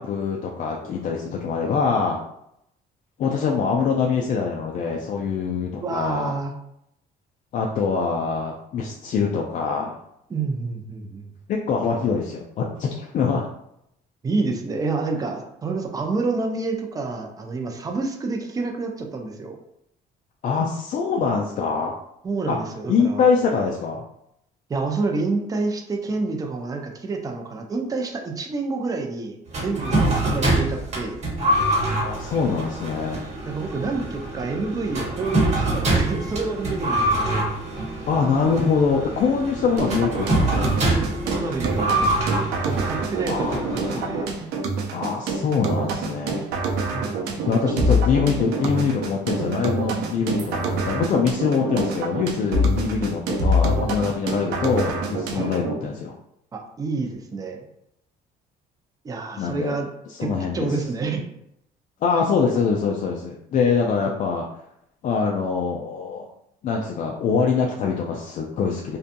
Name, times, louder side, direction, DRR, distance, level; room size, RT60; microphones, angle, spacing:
voice 1, 0.0-2.2 3.2-6.3 7.5-10.0 11.5-13.4 20.4-21.9 22.5-22.6 22.9-24.0 32.0-33.2 38.1-40.7 43.2-44.3 44.9-46.4 47.5-56.1 59.4-59.8 60.2-60.8 62.0-64.4 65.0-66.2 66.6-69.0, left 5 dB, 50° left, -1 dB, 0.4 m, -24 dB
voice 2, 5.8-6.5 10.3-11.3 14.2-19.6 22.2-23.3 24.7-31.2 33.4-37.5 40.9-42.1 42.6-44.3 46.9-47.5 55.3-55.5 56.5-57.7 59.0-59.9 60.2-61.2, right 3 dB, 20° right, 2 dB, 0.4 m, -28 dB
sound 1, 29.5-44.2, right 1 dB, 40° right, 1.1 m, -25 dB
sound 2, 39.8-55.8, right 1 dB, 90° right, 0.5 m, -26 dB
2.6 x 2.2 x 2.5 m, 0.78 s
cardioid pair, 110°, 17 cm